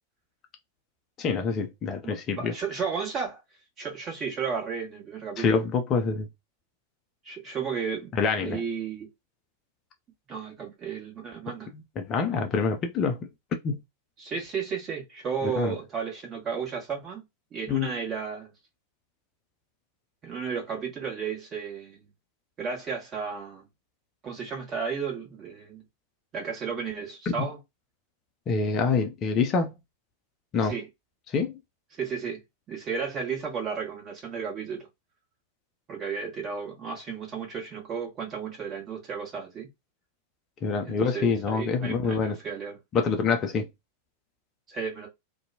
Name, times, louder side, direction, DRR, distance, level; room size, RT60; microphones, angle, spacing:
voice 1, 1.2-2.5 5.4-6.3 8.2-8.6 12.0-13.3 13.6-13.8 15.6-15.7 17.7-17.9 27.4-27.5 28.5-29.7 30.5-30.7 31.3-31.5 40.6-42.4 42.9-43.7, left 5 dB, 30° left, 0.5 m, -26 dB
voice 2, 2.0-3.4 3.8-5.5 7.2-9.1 10.3-11.7 14.2-17.2 17.5-18.5 20.2-22.1 22.6-23.7 24.2-25.8 26.3-27.6 30.6-30.9 31.9-32.4 32.7-34.9 35.9-39.7 40.8-42.8 44.7-45.1, right 6 dB, 30° right, 1.3 m, -33 dB
2.6 x 2.2 x 2.7 m
figure-of-eight pair, 90°, 0 cm